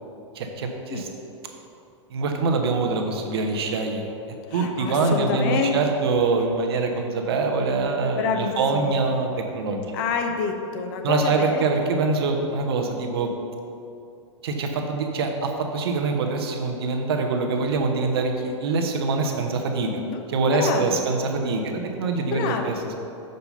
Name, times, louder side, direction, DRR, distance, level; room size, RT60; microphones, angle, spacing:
voice 1, 0.3-1.1 2.1-4.1 4.5-10.0 11.0-13.3 14.4-20.0 20.3-23.0, right 3 dB, 55° right, 3 dB, 1.0 m, -24 dB
voice 2, 4.5-5.8 8.0-8.9 9.9-11.6 20.0-20.2 20.5-21.0 22.3-22.8, left 5 dB, 40° left, 4 dB, 0.7 m, -27 dB
7.0 x 5.4 x 5.4 m, 2.8 s
figure-of-eight pair, 95°, 16 cm